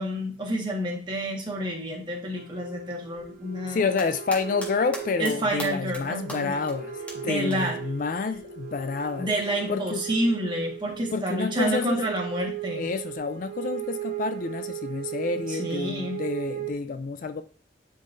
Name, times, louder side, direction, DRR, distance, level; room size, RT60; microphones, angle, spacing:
voice 1, 0.0-3.9 5.2-6.5 7.2-7.8 9.2-12.9 15.5-16.2, right 1 dB, 25° right, 1.5 m, -29 dB
sound 1, 2.4-16.7, right 9 dB, 50° right, 0.6 m, -37 dB
voice 2, 3.7-9.3 9.7-10.0 11.1-12.0 12.8-17.4, left 4 dB, 45° left, 0.3 m, -29 dB
sound 2, 3.7-4.7 4.9-5.3 5.6-6.0 6.3-6.4 6.7-6.8 7.1-7.2 7.5-7.6 9.1-9.2, equal, 10° left, 1.5 m, -36 dB
10.5 x 3.9 x 2.6 m
head